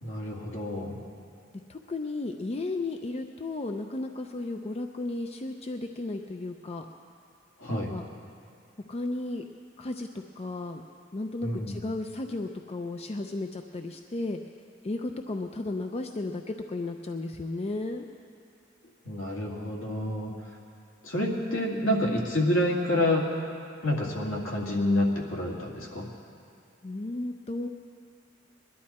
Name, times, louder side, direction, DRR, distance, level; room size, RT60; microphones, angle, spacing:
voice 1, 0.0-1.0 7.6-7.9 11.4-11.8 19.0-20.3 21.0-23.3 23.8-26.1, left 1 dB, 75° left, -1 dB, 2.2 m, -28 dB
voice 2, 1.7-6.9 7.7-8.0 8.9-9.4 9.8-10.1 10.4-10.8 11.1-14.4 14.8-18.1 26.8-27.7, left 2 dB, 30° left, 5 dB, 0.5 m, -34 dB
21.0 x 11.5 x 4.3 m, 2.5 s
head